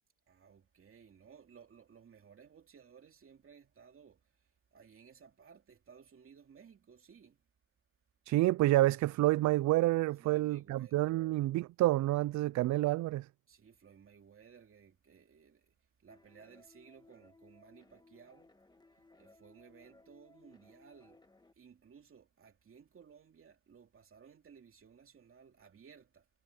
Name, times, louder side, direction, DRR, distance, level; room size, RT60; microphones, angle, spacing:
voice 1, 0.3-7.5 10.2-11.1 13.5-18.5 18.9-21.2 21.5-26.3, right 6 dB, 45° right, 2.8 m, -59 dB
voice 2, 8.3-13.3, right 16 dB, 65° right, 0.4 m, -28 dB
sound 1, 16.1-21.5, left 2 dB, 15° left, 1.8 m, -63 dB
cardioid pair, 90°, 30 cm